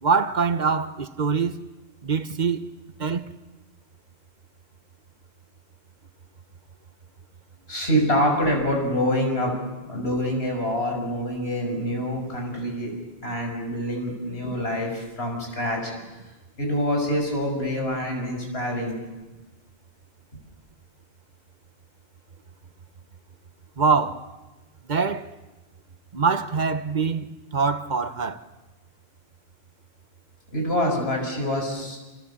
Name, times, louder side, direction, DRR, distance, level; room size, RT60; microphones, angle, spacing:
voice 1, 0.0-1.6 2.0-2.7 3.0-3.3 23.8-24.3 24.9-25.3 26.1-28.5, right 5 dB, 45° right, 1.1 m, -24 dB
voice 2, 7.7-9.5 9.9-12.9 13.2-15.9 16.6-18.9 30.5-32.0, equal, 75° left, 6.5 m, -26 dB
29.0 x 28.0 x 7.3 m
omnidirectional pair, 1.1 m